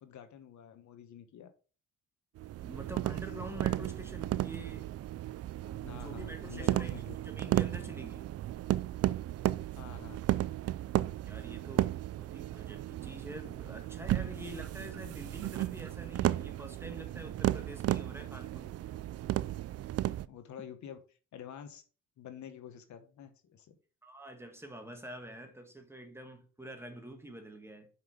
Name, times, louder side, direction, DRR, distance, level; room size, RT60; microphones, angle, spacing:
voice 1, 0.0-1.5 5.8-7.2 9.8-10.2 20.3-21.0 21.3-21.8 22.2-23.7, left 9 dB, 70° left, 1.2 m, -48 dB
sound 1, 2.4-20.3, right 14 dB, 55° right, 0.4 m, -34 dB
voice 2, 2.6-4.9 5.6-8.3 11.3-18.8 24.0-27.9, right 1 dB, 10° right, 1.6 m, -47 dB
5.7 x 5.6 x 4.8 m
cardioid pair, 90°, 30 cm